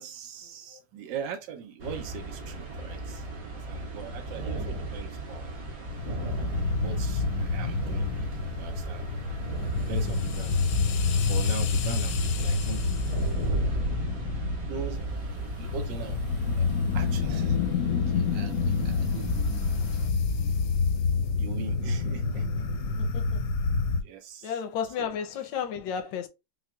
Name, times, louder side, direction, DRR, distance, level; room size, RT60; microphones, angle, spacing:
voice 1, 0.0-5.6 6.8-8.1 8.6-9.1 9.9-13.2 13.6-13.7 14.6-15.1 15.6-16.2 16.5-16.7 16.9-17.6 17.9-20.6 21.4-22.5 22.9-23.0 24.0-24.6 25.0-25.2 26.0-26.1, right 7 dB, 85° right, 1.4 m, -41 dB
sound 1, 1.8-20.1, right 2 dB, 60° right, 1.8 m, -35 dB
sound 2, 5.9-24.0, left 4 dB, 65° left, 0.9 m, -28 dB
voice 2, 23.0-23.4 24.4-26.3, left 7 dB, 85° left, 1.3 m, -32 dB
5.6 x 2.3 x 2.2 m
omnidirectional pair, 2.0 m